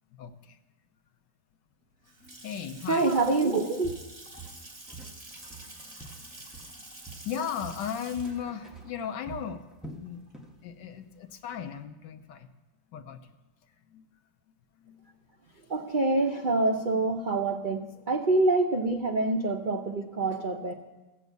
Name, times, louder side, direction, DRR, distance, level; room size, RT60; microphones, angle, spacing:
voice 1, 0.2-0.6 2.4-3.1 5.9-6.0 7.2-9.7 10.0-10.2 10.6-12.5 12.9-13.2 13.9-14.0 14.8-15.1, left 8 dB, 70° left, 8 dB, 1.4 m, -36 dB
Water tap faucet / Sink (filling or washing) / Splash splatter, 1.8-10.7, right 1 dB, 35° right, 2.7 m, -48 dB
voice 2, 2.9-3.9 15.7-20.7, right 2 dB, 70° right, 3 dB, 0.4 m, -26 dB
Walk footsteps, 3.2-3.5 3.8-5.2 5.5-6.8 7.1-10.6 10.9-11.1 11.6-11.7, right 3 dB, ahead, 0.6 m, -46 dB
14.5 x 7.3 x 8.1 m, 1.1 s
omnidirectional pair, 2.1 m